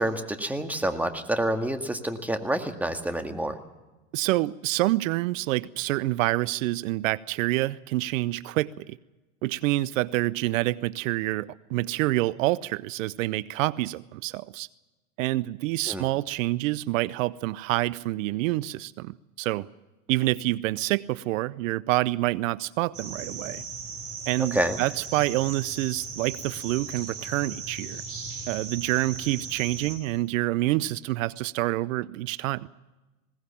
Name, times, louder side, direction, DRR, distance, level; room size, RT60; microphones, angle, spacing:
voice 1, 0.0-3.6 15.9-16.0 24.4-24.8, right 1 dB, 5° right, 1.9 m, -28 dB
voice 2, 4.1-9.0 9.4-14.7 15.2-19.7 20.1-23.6 24.3-28.0 28.5-32.7, right 17 dB, 70° right, 0.7 m, -27 dB
sound 1, 22.9-30.0, right 4 dB, 35° right, 6.6 m, -38 dB
20.5 x 18.5 x 7.1 m
hypercardioid pair, 110°, 40 cm